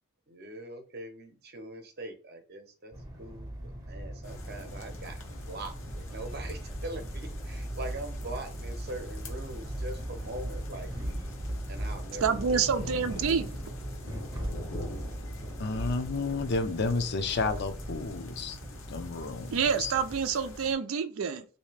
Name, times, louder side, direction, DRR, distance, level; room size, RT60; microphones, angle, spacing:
voice 1, 0.3-11.3 11.7-12.7, right 2 dB, 50° right, 0.7 m, -42 dB
sound 1, 2.9-20.2, right 1 dB, 20° right, 0.7 m, -39 dB
sound 2, 4.2-20.7, left 1 dB, 80° left, 0.9 m, -45 dB
voice 2, 12.2-13.6 14.4-14.5 19.5-21.4, right 6 dB, 85° right, 0.4 m, -28 dB
voice 3, 15.6-18.6 18.9-19.9, left 3 dB, 55° left, 0.5 m, -31 dB
3.2 x 2.7 x 3.2 m
head